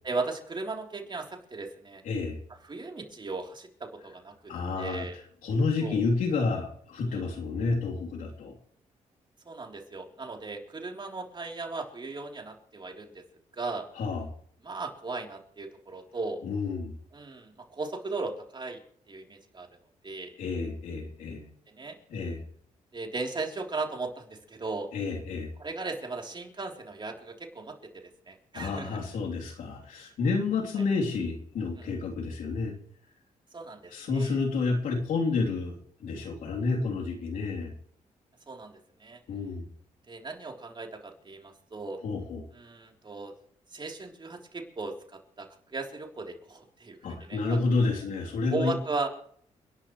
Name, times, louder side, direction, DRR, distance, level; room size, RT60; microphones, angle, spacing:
voice 1, 0.0-2.0 2.6-4.3 4.8-5.2 5.8-6.0 7.1-7.3 9.5-13.2 13.6-13.9 14.6-16.4 17.1-18.8 19.1-19.7 20.0-20.3 21.7-22.0 22.9-24.9 25.6-29.0 31.8-31.9 33.5-34.4 38.5-39.2 40.1-42.0 42.5-43.3 43.7-47.6 48.5-49.1, right 3 dB, 35° right, 1 dB, 3.6 m, -37 dB
voice 2, 2.1-2.4 4.5-5.1 5.4-8.6 14.0-14.3 16.4-16.9 20.4-21.4 22.1-22.4 24.9-25.5 28.6-32.7 33.9-37.7 39.3-39.7 42.0-42.5 47.0-48.8, left 4 dB, 85° left, 0 dB, 3.4 m, -30 dB
30.0 x 11.0 x 3.3 m, 0.63 s
cardioid pair, 75°, 13 cm